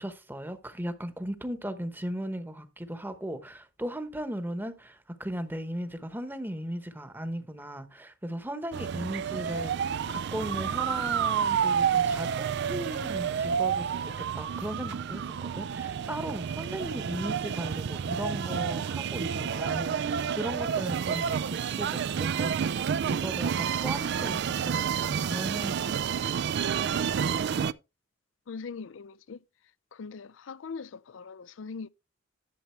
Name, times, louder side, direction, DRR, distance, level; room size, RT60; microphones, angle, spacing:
voice 1, 0.0-14.0 14.3-26.2, right 1 dB, 10° right, 1.0 m, -37 dB
sound 1, 8.7-27.7, right 7 dB, 60° right, 0.4 m, -29 dB
voice 2, 28.5-29.4 29.9-31.9, left 5 dB, 70° left, 0.5 m, -41 dB
11.5 x 7.2 x 3.2 m
head